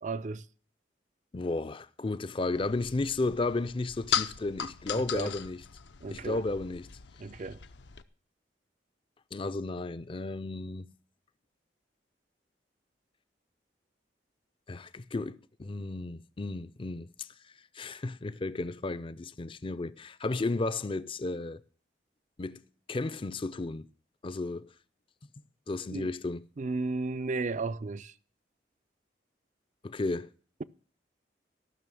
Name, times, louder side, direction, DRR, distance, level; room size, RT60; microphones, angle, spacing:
voice 1, 0.0-0.4 4.9-5.4 6.0-6.4 7.2-7.6 25.9-26.1 26.6-28.1, right 3 dB, 45° right, 0.5 m, -34 dB
voice 2, 1.3-5.6 6.1-6.9 9.3-10.9 14.7-17.3 17.7-21.6 22.4-22.6 22.9-23.9 24.2-24.7 25.7-26.4 29.8-30.3, left 2 dB, 30° left, 0.5 m, -33 dB
sound 1, 2.6-8.0, left 9 dB, 75° left, 0.7 m, -37 dB
14.0 x 6.3 x 7.6 m
head